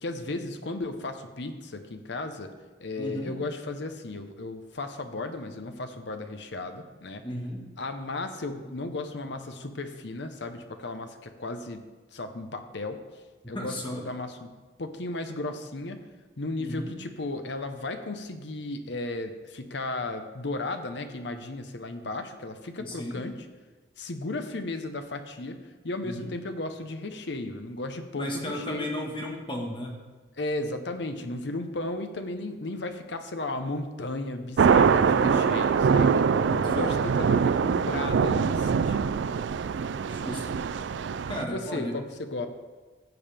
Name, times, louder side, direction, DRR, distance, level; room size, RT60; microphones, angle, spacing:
voice 1, 0.0-2.5 2.8-7.2 7.8-11.8 12.1-13.0 13.5-14.5 14.8-16.0 16.4-23.5 24.0-25.6 25.8-28.9 30.4-36.3 36.6-39.1 41.4-42.5, left 2 dB, 70° left, 7 dB, 0.9 m, -35 dB
voice 2, 3.0-3.3 7.2-7.6 13.5-14.0 16.6-16.9 22.8-23.2 26.0-26.3 28.1-30.0 36.5-36.9 40.0-40.6 41.3-41.9, equal, 25° left, 0 dB, 1.6 m, -34 dB
sound 1, 34.6-41.4, right 6 dB, 75° right, 0.3 m, -23 dB
15.5 x 7.1 x 3.5 m, 1.3 s
head